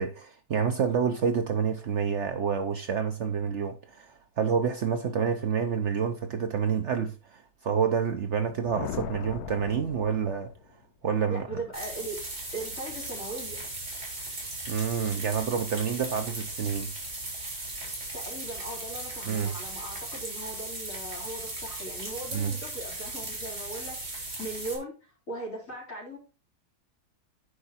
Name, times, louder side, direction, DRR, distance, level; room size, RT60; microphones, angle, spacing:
voice 1, 0.0-10.5 11.0-11.5 14.7-16.9 19.3-19.5 22.3-22.5, right 7 dB, 55° right, 0.9 m, -28 dB
sound 1, 8.4-10.8, left 9 dB, 85° left, 1.2 m, -39 dB
voice 2, 11.3-12.3 12.5-13.6 18.1-26.2, right 1 dB, 55° left, 3.9 m, -39 dB
sound 2, 11.7-24.8, right 2 dB, 80° right, 5.2 m, -37 dB
9.7 x 4.7 x 4.3 m
omnidirectional pair, 1.6 m